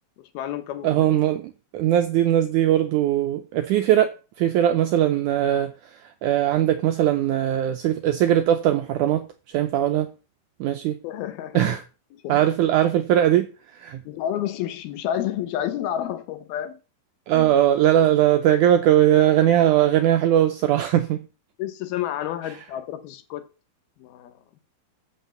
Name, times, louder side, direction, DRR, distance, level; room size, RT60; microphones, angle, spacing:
voice 1, 0.2-1.1 11.0-11.8 12.1-12.5 14.1-16.8 17.3-17.5 21.6-23.4 24.0-24.3, left 11 dB, 85° left, 2.9 m, -30 dB
voice 2, 0.8-4.1 4.4-5.7 6.2-10.1 10.6-11.0 11.5-11.8 12.3-14.0 17.3-21.2, right 11 dB, 80° right, 1.8 m, -20 dB
7.8 x 6.2 x 6.9 m
omnidirectional pair, 4.3 m